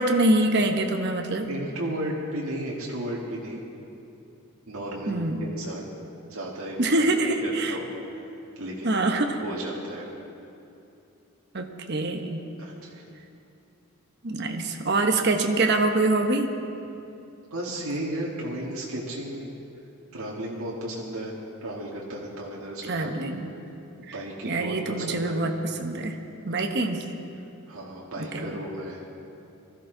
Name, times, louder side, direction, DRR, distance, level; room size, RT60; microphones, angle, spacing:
voice 1, 0.0-1.5 5.1-5.5 6.8-7.8 8.8-9.4 11.5-12.4 14.2-16.5 22.9-23.5 24.4-25.5 25.8-26.2 26.4-27.0 28.3-28.4, right 2 dB, 50° right, 4 dB, 1.0 m, -24 dB
voice 2, 1.5-3.6 4.7-5.9 6.3-10.1 12.6-13.0 17.5-19.5 20.1-21.3 21.6-23.1 24.0-25.4 26.5-26.8 27.7-29.1, right 1 dB, 75° right, -4 dB, 1.8 m, -34 dB
20.0 x 13.5 x 3.9 m, 2.7 s
head